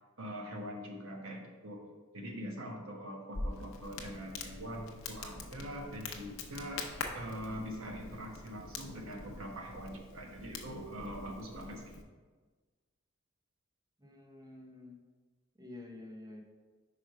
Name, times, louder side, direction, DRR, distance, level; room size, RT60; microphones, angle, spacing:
voice 1, 0.2-1.8 2.1-6.8 7.1-12.0, equal, 80° right, 1 dB, 1.2 m, -43 dB
Crackle, 3.3-12.0, left 3 dB, 75° left, 0.8 m, -44 dB
voice 2, 14.0-15.0 15.5-16.4, left 2 dB, 20° right, 1 dB, 0.8 m, -49 dB
5.2 x 4.8 x 4.6 m, 1.4 s
head